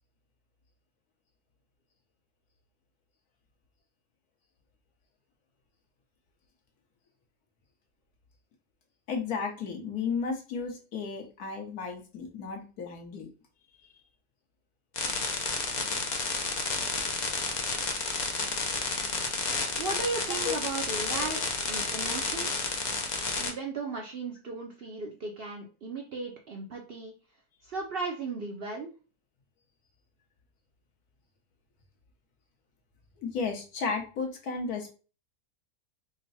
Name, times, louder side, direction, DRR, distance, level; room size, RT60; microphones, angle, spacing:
voice 1, 9.1-13.3 20.4-20.6 21.1-21.2 33.2-34.9, left 5 dB, 75° left, 2 dB, 1.5 m, -33 dB
sound 1, 15.0-23.5, left 4 dB, 50° left, 0.5 m, -31 dB
voice 2, 19.7-22.7 23.4-27.1 27.6-28.9, right 3 dB, 65° right, 1 dB, 0.5 m, -36 dB
3.7 x 2.1 x 4.1 m, 0.35 s
omnidirectional pair, 1.6 m